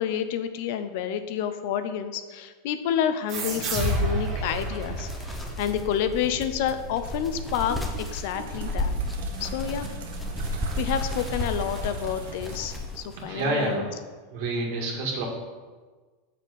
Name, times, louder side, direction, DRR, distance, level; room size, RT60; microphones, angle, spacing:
voice 1, 0.0-8.9 9.4-9.9 10.8-13.9, left 9 dB, 55° left, 10 dB, 0.6 m, -29 dB
sound 1, 3.3-6.5, right 1 dB, 35° right, 2.2 m, -30 dB
sound 2, 4.1-13.2, left 1 dB, 5° left, 0.9 m, -33 dB
sound 3, 6.6-13.7, right 5 dB, 80° right, 1.4 m, -43 dB
voice 2, 13.3-13.9 14.3-15.2, right 2 dB, 60° right, -1 dB, 2.0 m, -28 dB
8.1 x 6.7 x 5.2 m, 1.4 s
supercardioid pair, 165°, 0 cm